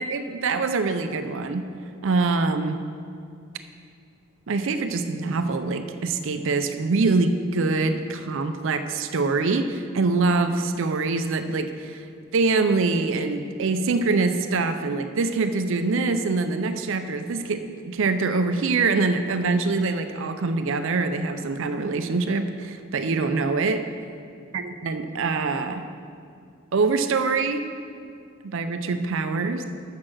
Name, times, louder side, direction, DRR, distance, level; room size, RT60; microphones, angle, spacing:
voice 1, 0.0-1.6 2.0-2.8 4.5-12.0 12.3-23.8 24.5-25.8 26.7-27.7 28.4-29.6, right 3 dB, 60° right, 8 dB, 0.5 m, -24 dB
7.4 x 6.5 x 6.1 m, 2.4 s
head